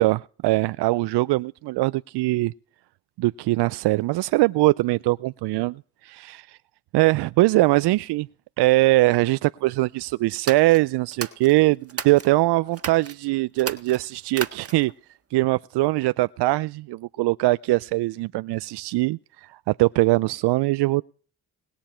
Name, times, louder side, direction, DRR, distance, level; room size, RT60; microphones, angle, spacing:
voice 1, 0.0-2.5 3.2-6.6 6.9-8.3 8.6-14.9 15.3-21.0, right 19 dB, 70° right, 0.5 m, -22 dB
sound 1, 10.3-12.3 12.7-13.2 13.5-15.0, right 5 dB, 35° right, 1.5 m, -34 dB
20.5 x 6.9 x 4.4 m
supercardioid pair, 60°, 42 cm